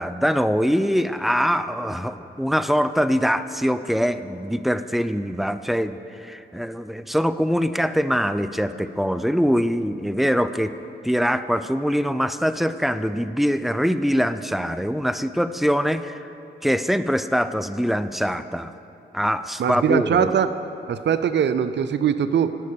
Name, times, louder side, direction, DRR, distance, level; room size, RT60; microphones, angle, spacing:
voice 1, 0.0-10.7 11.0-16.2 16.6-18.7 19.1-20.3, equal, ahead, 12 dB, 0.4 m, -23 dB
voice 2, 19.6-20.5 20.9-22.6, right 8 dB, 60° right, 12 dB, 0.5 m, -21 dB
11.5 x 5.3 x 6.8 m, 2.8 s
supercardioid pair, 45°, 21 cm